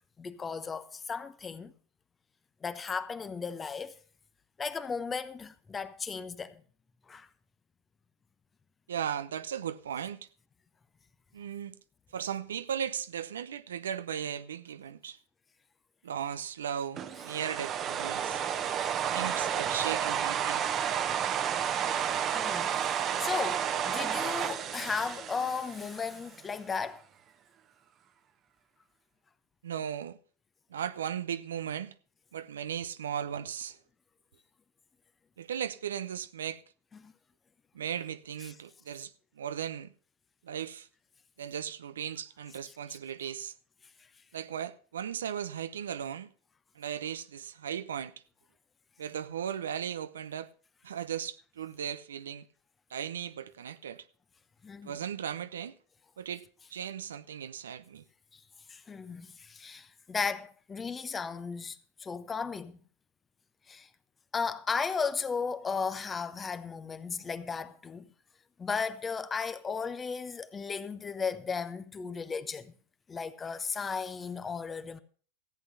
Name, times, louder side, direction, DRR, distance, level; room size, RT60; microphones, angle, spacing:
voice 1, 0.2-1.7 2.6-4.0 4.6-6.6 7.1-7.3 22.3-27.0 37.0-37.1 54.6-54.9 58.3-58.4 58.7-62.8 63.7-63.9 64.3-68.1 68.6-72.7 73.1-75.0, left 5 dB, 20° left, 0.9 m, -35 dB
voice 2, 8.9-10.3 11.3-11.8 12.1-15.2 16.0-18.4 19.1-20.6 29.6-30.2 30.7-31.9 32.3-33.8 35.4-36.6 37.7-39.9 40.4-40.9 41.4-43.5 44.3-46.3 46.7-48.1 49.0-50.5 50.8-52.5 52.9-54.1 54.8-55.8 56.2-56.4 56.7-58.0, right 9 dB, 85° right, 0.6 m, -37 dB
sound 1, 17.0-26.2, right 9 dB, 40° right, 1.0 m, -31 dB
14.5 x 8.1 x 5.5 m
hypercardioid pair, 105°, 0 cm